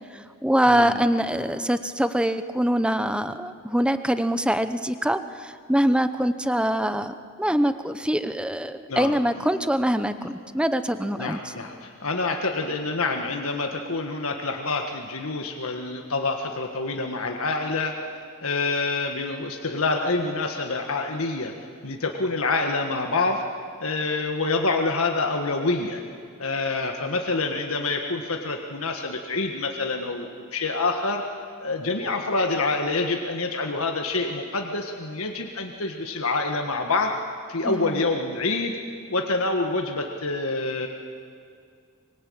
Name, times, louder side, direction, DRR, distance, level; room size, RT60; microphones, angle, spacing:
voice 1, 0.1-11.5 37.6-38.0, equal, 5° right, 11 dB, 0.8 m, -24 dB
voice 2, 0.7-1.0 8.9-9.2 11.2-21.5 21.8-23.4 23.8-26.0 26.4-31.2 31.6-37.1 37.5-38.7 39.1-40.9, left 3 dB, 75° left, 3 dB, 1.6 m, -27 dB
24.5 x 22.5 x 8.7 m, 2.2 s
head